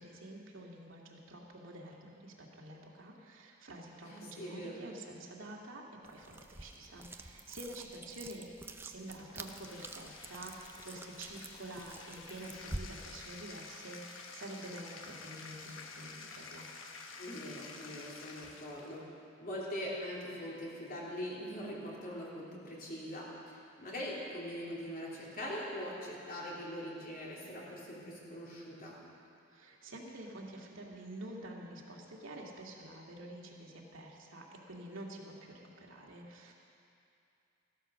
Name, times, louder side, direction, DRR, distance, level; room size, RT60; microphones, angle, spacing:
voice 1, 0.0-8.5 8.8-16.7 29.5-36.5, right 1 dB, 75° right, -2 dB, 2.1 m, -48 dB
voice 2, 4.0-4.8 17.2-19.0 19.4-29.0, equal, 45° left, -5 dB, 3.2 m, -42 dB
sound 1, 6.0-12.8, right 2 dB, 10° right, 0.5 m, -48 dB
Bathtub (filling or washing), 9.0-19.0, left 4 dB, 70° left, 1.2 m, -50 dB
14.5 x 12.5 x 6.3 m, 2.6 s
head